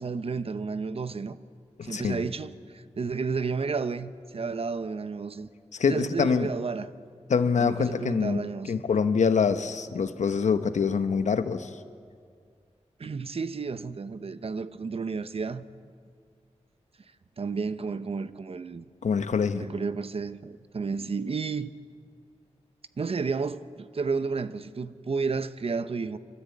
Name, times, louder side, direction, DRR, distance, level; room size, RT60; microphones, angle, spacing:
voice 1, 0.0-1.4 1.8-5.5 5.8-6.9 7.6-8.8 13.0-15.7 17.4-18.8 19.6-21.7 23.0-26.2, right 4 dB, 55° right, 0.8 m, -32 dB
voice 2, 1.8-2.2 5.7-6.5 7.3-11.7 19.0-19.7, left 6 dB, 90° left, 0.9 m, -25 dB
25.0 x 13.5 x 8.5 m
wide cardioid pair, 95°, 12 cm